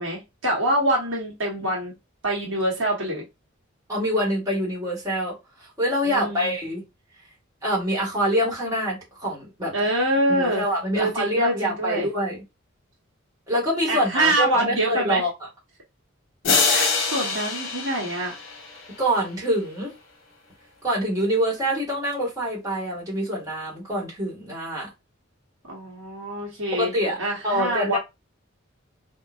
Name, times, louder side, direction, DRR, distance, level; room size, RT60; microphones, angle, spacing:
voice 1, 0.0-1.9 2.2-3.2 6.0-6.5 9.7-10.6 10.9-12.1 13.9-15.2 16.7-18.3 25.7-26.9 27.2-28.0, right 1 dB, 65° right, 1.2 m, -25 dB
voice 2, 3.9-6.8 7.6-9.7 10.3-12.4 13.5-15.3 19.0-19.9 20.8-24.9 26.7-27.2 27.4-28.0, equal, 15° right, 1.5 m, -25 dB
sound 1, 16.4-19.1, left 4 dB, 60° left, 0.9 m, -24 dB
3.7 x 2.4 x 2.4 m
head